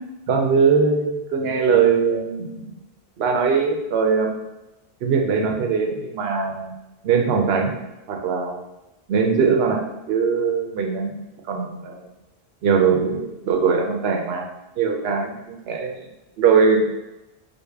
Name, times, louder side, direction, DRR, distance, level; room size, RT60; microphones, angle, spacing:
voice 1, 0.3-2.7 3.2-4.3 5.0-6.7 7.0-7.7 8.1-8.5 9.1-11.2 11.5-12.0 12.6-14.5 14.8-16.0 16.4-17.1, right 5 dB, 75° right, 2 dB, 0.8 m, -21 dB
3.4 x 2.1 x 3.4 m, 0.95 s
omnidirectional pair, 1.1 m